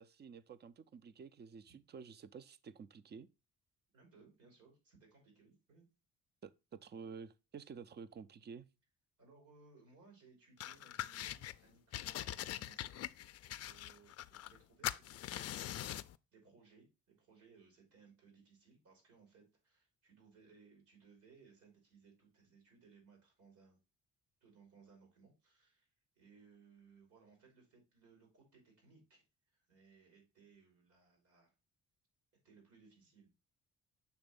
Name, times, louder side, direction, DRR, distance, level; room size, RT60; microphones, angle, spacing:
voice 1, 0.0-3.3 6.4-8.7, right 6 dB, 35° right, 0.5 m, -51 dB
voice 2, 3.9-5.9 9.2-13.1 13.4-15.7 16.3-23.8 24.4-25.9 26.2-29.2 29.5-31.5 32.4-33.3, right 5 dB, 90° right, 3.6 m, -64 dB
sound 1, 10.6-11.6 11.9-14.6 14.8-16.2, left 12 dB, 55° left, 0.4 m, -43 dB
7.0 x 3.2 x 5.2 m
cardioid pair, 90°, 30 cm